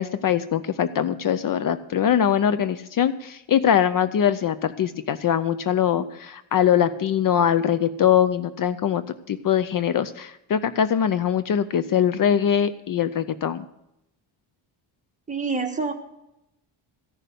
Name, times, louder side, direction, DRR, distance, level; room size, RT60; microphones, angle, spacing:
voice 1, 0.0-13.6, left 9 dB, 45° left, 13 dB, 0.6 m, -22 dB
voice 2, 15.3-15.9, right 4 dB, 15° right, 4 dB, 1.4 m, -26 dB
14.5 x 6.7 x 7.9 m, 0.85 s
cardioid pair, 130°, 46 cm